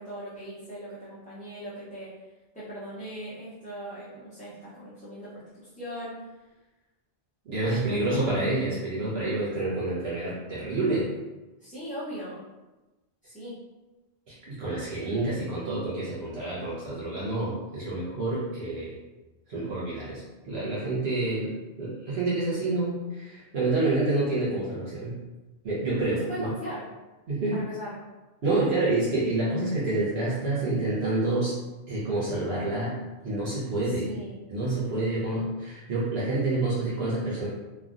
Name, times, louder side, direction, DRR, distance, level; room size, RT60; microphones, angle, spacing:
voice 1, 0.0-2.1 2.5-6.2 7.6-8.4 11.6-12.4 13.2-13.6 26.0-26.9 27.5-28.0 33.8-34.4, right 1 dB, 10° left, -13 dB, 0.5 m, -39 dB
voice 2, 7.4-11.1 14.3-19.0 19.5-25.2 25.6-26.5 27.3-27.6 28.4-31.6 31.9-33.0 33.2-34.2 34.5-37.5, right 2 dB, 70° right, -8 dB, 1.0 m, -28 dB
3.1 x 2.3 x 2.4 m, 1.1 s
omnidirectional pair, 1.1 m